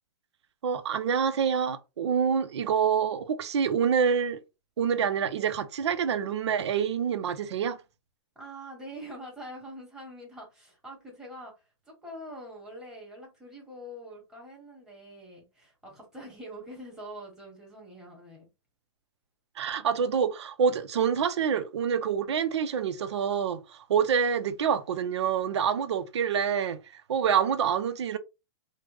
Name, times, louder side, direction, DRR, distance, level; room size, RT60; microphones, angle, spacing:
voice 1, 0.6-4.4 4.8-7.8 19.6-28.2, right 7 dB, 85° right, 0.5 m, -27 dB
voice 2, 8.3-11.5 11.9-18.4, equal, 5° right, 1.2 m, -44 dB
3.2 x 2.1 x 3.2 m
hypercardioid pair, 155°, 14 cm